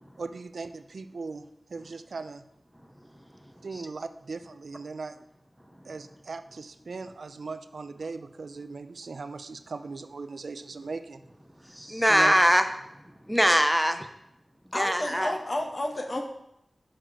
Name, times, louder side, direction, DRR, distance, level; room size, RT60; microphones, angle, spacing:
voice 1, 0.2-1.4 1.7-2.5 3.6-5.2 5.8-11.2 12.1-12.3, right 4 dB, 90° right, 11 dB, 0.4 m, -38 dB
voice 2, 11.6-12.7 13.2-14.1 14.7-15.3, equal, 5° right, 8 dB, 0.6 m, -23 dB
voice 3, 14.7-16.2, left 1 dB, 45° left, 3 dB, 1.1 m, -31 dB
6.3 x 6.0 x 4.6 m, 0.82 s
wide cardioid pair, 90°, 0 cm